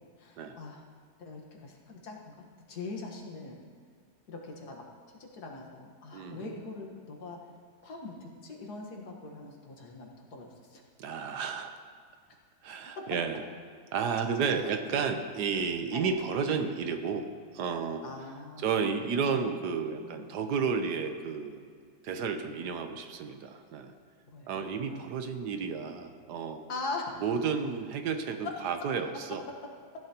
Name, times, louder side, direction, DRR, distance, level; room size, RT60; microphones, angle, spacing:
voice 1, 0.2-0.8 1.2-3.6 4.3-4.9 5.2-7.4 7.8-10.8 11.3-11.4 13.0-13.1 14.6-14.9 15.9-16.1 18.0-18.7 19.1-19.6 20.0-20.2 24.3-25.0 26.7-27.2, left 3 dB, 70° left, 0 dB, 2.0 m, -42 dB
voice 2, 6.1-6.5 11.0-11.7 12.6-13.4 13.9-17.3 17.5-18.0 18.6-21.6 22.0-23.9 24.5-26.6 27.2-29.4, right 6 dB, 80° right, 7 dB, 1.4 m, -32 dB
15.0 x 11.0 x 2.9 m, 2.2 s
omnidirectional pair, 1.7 m